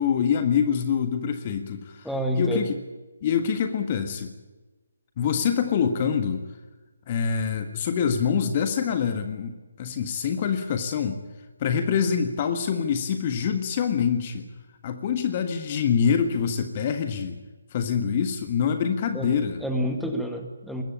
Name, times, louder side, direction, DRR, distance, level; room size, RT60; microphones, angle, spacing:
voice 1, 0.0-2.1 2.3-2.8 3.2-4.3 5.2-6.5 7.1-11.2 11.6-14.5 14.8-17.4 17.7-19.6, left 7 dB, 30° left, 7 dB, 1.6 m, -25 dB
voice 2, 2.0-2.7 19.1-19.3 19.6-20.8, equal, ahead, 3 dB, 2.0 m, -28 dB
21.0 x 16.0 x 9.9 m, 1.2 s
figure-of-eight pair, 145°, 0 cm